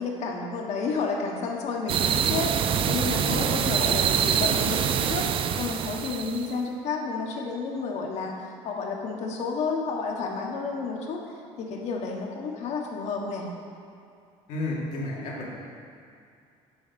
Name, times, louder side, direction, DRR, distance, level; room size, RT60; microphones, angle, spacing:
voice 1, 0.0-5.3 5.6-11.2 11.6-13.5, left 4 dB, 60° left, 0 dB, 1.4 m, -31 dB
sound 1, 1.9-6.5, right 8 dB, 45° right, 0.4 m, -25 dB
voice 2, 3.1-3.7 14.5-15.5, left 2 dB, 75° left, -4 dB, 2.1 m, -32 dB
7.0 x 5.1 x 6.9 m, 2.5 s
cardioid pair, 120°, 13 cm